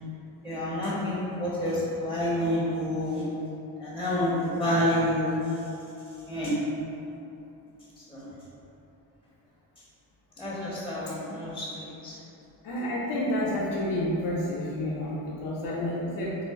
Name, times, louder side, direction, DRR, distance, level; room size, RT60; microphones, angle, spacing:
voice 1, 0.4-3.3 3.8-5.4 6.3-6.5 8.1-8.2 10.4-12.1, left 1 dB, ahead, -9 dB, 1.0 m, -28 dB
voice 2, 12.6-16.4, left 1 dB, 55° left, -7 dB, 0.8 m, -30 dB
3.9 x 2.4 x 3.6 m, 2.9 s
supercardioid pair, 70°, 49 cm